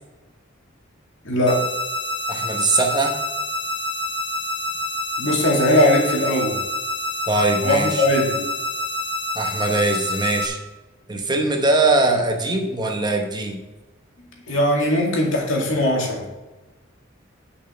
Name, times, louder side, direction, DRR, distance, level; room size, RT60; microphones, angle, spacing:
voice 1, 1.2-1.6 5.2-6.6 7.6-8.5 14.5-16.2, left 1 dB, 70° left, -1 dB, 2.1 m, -19 dB
sound 1, 1.5-10.5, left 1 dB, 25° left, 0.8 m, -27 dB
voice 2, 2.3-3.1 7.3-8.0 9.3-10.6 11.1-13.6, right 2 dB, 20° right, 3 dB, 1.0 m, -21 dB
6.7 x 5.4 x 6.8 m, 1.1 s
head